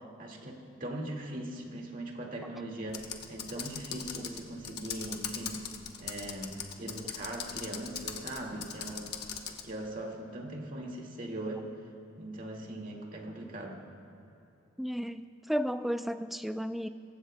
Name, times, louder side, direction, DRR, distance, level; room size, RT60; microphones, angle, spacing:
voice 1, 0.0-5.7 6.0-9.1 9.6-11.6 12.2-13.8, right 1 dB, 45° right, 0 dB, 1.9 m, -40 dB
Computer keyboard, 2.9-9.7, left 7 dB, 55° left, 0.9 m, -40 dB
voice 2, 14.8-16.9, equal, ahead, 10 dB, 0.3 m, -33 dB
23.5 x 15.5 x 2.2 m, 2.8 s
head